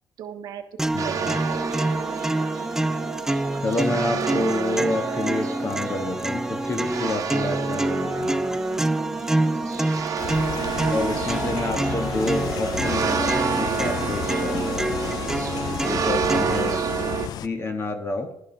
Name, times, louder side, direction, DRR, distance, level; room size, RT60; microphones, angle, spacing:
voice 1, 0.2-0.6 1.0-2.0 10.5-10.9 11.4-11.9, right 9 dB, 75° right, 4 dB, 1.0 m, -38 dB
sound 1, 0.8-16.8, right 1 dB, 5° right, 0.5 m, -27 dB
voice 2, 0.9-1.4 3.6-8.4 10.9-15.0 15.7-16.8 17.4-18.3, left 2 dB, 35° left, 5 dB, 1.6 m, -28 dB
sound 2, 1.0-17.3, right 7 dB, 50° right, 1.2 m, -30 dB
sound 3, 10.2-17.5, left 11 dB, 70° left, 0.5 m, -33 dB
12.0 x 11.0 x 4.0 m, 0.80 s
cardioid pair, 95°, 7 cm